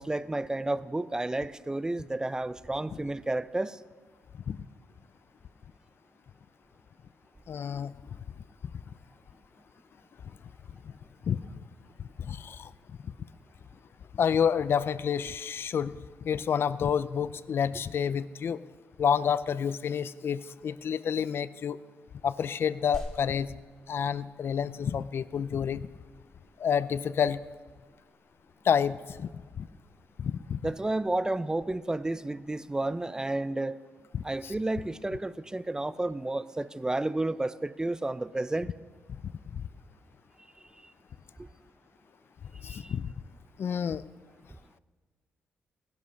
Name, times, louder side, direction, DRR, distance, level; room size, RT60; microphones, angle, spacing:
voice 1, 0.0-3.8 30.6-33.8 34.2-38.7 41.4-41.5 42.7-42.9, right 2 dB, 15° right, 0.5 m, -31 dB
voice 2, 7.5-7.9 11.3-11.4 12.3-12.7 14.1-16.0 16.2-18.6 19.0-21.8 22.2-23.5 23.9-25.9 26.6-27.4 28.6-29.3 29.6-29.7 30.2-30.6 34.1-34.5 39.5-39.7 42.6-43.1 43.6-44.0, left 7 dB, 55° left, 0.5 m, -29 dB
sound 1, 22.9-32.9, left 1 dB, 10° left, 2.7 m, -50 dB
19.0 x 11.0 x 6.3 m
cardioid pair, 80°, 5 cm